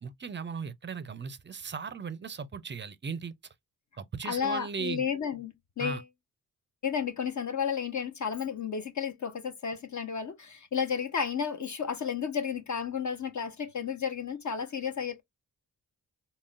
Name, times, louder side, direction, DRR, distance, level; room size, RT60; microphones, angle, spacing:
voice 1, 0.0-3.3 4.0-5.1 5.8-6.0, right 5 dB, 30° right, 0.5 m, -37 dB
voice 2, 4.2-6.0 6.8-15.2, left 7 dB, 45° left, 0.7 m, -32 dB
3.7 x 2.0 x 2.4 m
cardioid pair, 55°, 40 cm